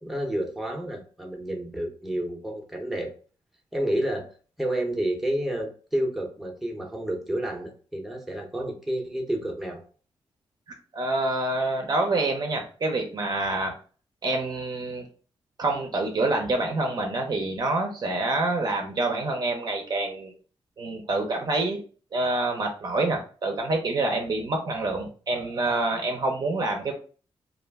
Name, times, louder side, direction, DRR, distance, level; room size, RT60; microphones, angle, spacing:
voice 1, 0.0-3.1 3.7-4.3 4.6-9.8, right 1 dB, ahead, 0 dB, 0.7 m, -30 dB
voice 2, 10.9-13.7 14.2-15.1 15.6-20.3 20.8-21.8 22.1-26.9, right 2 dB, 45° right, 2 dB, 0.6 m, -27 dB
2.3 x 2.1 x 3.4 m, 0.40 s
cardioid pair, 85°, 10 cm